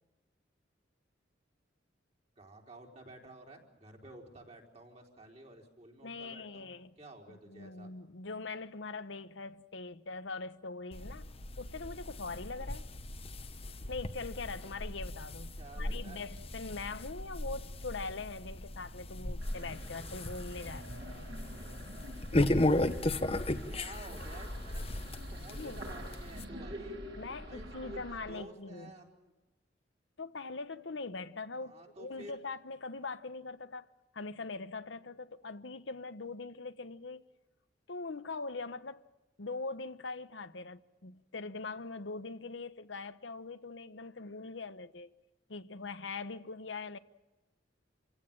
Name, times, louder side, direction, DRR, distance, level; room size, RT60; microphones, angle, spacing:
voice 1, 2.4-6.7 7.0-7.9 15.6-16.2 23.7-25.0 25.3-27.0 27.5-29.3 31.6-32.4, right 1 dB, 35° right, 4.1 m, -51 dB
voice 2, 6.0-6.9 7.5-11.3 11.6-12.9 13.9-21.0 25.6-25.8 27.2-28.9 30.2-33.9 34.1-37.2 37.9-39.0 39.4-45.1 45.5-47.0, left 3 dB, 75° left, 1.0 m, -42 dB
sound 1, 10.9-26.4, left 1 dB, 30° left, 1.2 m, -36 dB
sound 2, 19.4-28.3, equal, 60° right, 6.9 m, -47 dB
27.5 x 16.5 x 8.9 m
head